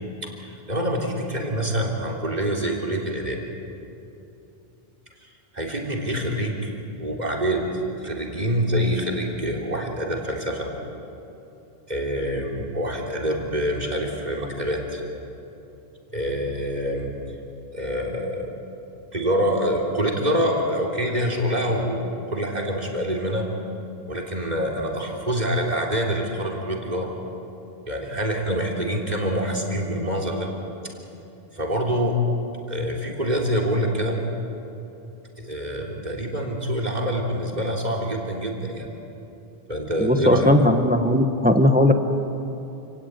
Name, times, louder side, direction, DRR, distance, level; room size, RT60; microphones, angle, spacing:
voice 1, 0.2-3.4 5.2-6.7 7.0-7.7 8.0-10.7 11.9-15.0 16.1-17.1 17.7-18.5 19.1-23.5 24.1-27.1 27.9-30.5 31.5-32.2 32.7-34.2 35.4-38.9 39.7-40.6, equal, 45° right, 1 dB, 3.6 m, -26 dB
voice 2, 40.0-41.9, left 1 dB, 10° right, 6 dB, 1.2 m, -18 dB
28.5 x 18.0 x 9.4 m, 2.9 s
omnidirectional pair, 1.0 m